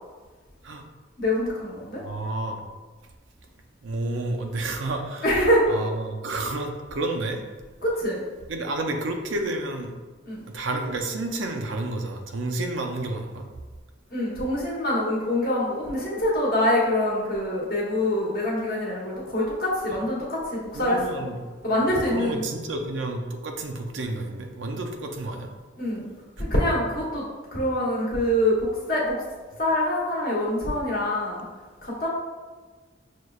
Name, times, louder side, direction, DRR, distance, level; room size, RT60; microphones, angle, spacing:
voice 1, 1.2-2.0 5.2-5.6 7.8-8.2 10.2-10.4 14.1-21.2 21.6-22.5 25.8-26.1 26.4-27.2 27.5-29.2 29.6-31.4 31.8-32.1, left 1 dB, 50° left, -5 dB, 1.0 m, -25 dB
voice 2, 2.0-2.7 3.8-5.3 5.7-7.4 8.5-9.9 10.5-13.5 20.7-21.4 21.7-25.5, right 2 dB, 75° right, 4 dB, 0.5 m, -30 dB
6.2 x 2.1 x 2.3 m, 1.4 s
head